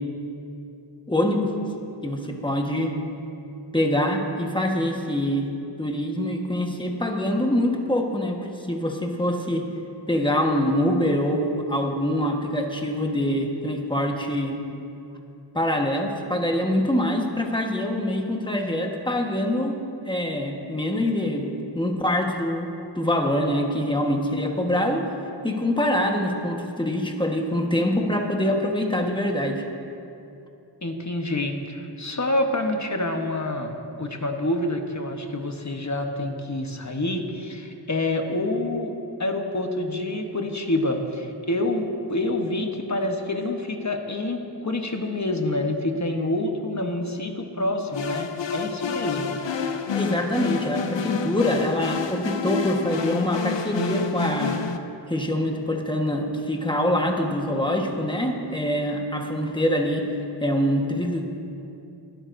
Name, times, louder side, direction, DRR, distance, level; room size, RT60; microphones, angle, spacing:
voice 1, 1.1-1.5 2.0-2.9 3.7-5.5 5.8-9.7 10.1-14.6 15.5-19.8 20.0-25.1 25.4-29.6 49.2-49.3 49.9-54.6 55.1-60.1 60.4-61.2, left 1 dB, 10° left, 2 dB, 1.3 m, -24 dB
voice 2, 30.8-49.3, left 1 dB, 40° left, 4 dB, 1.1 m, -27 dB
sound 1, 47.9-54.8, left 6 dB, 75° left, 0.7 m, -29 dB
20.5 x 11.0 x 2.6 m, 2.7 s
wide cardioid pair, 55°, 44 cm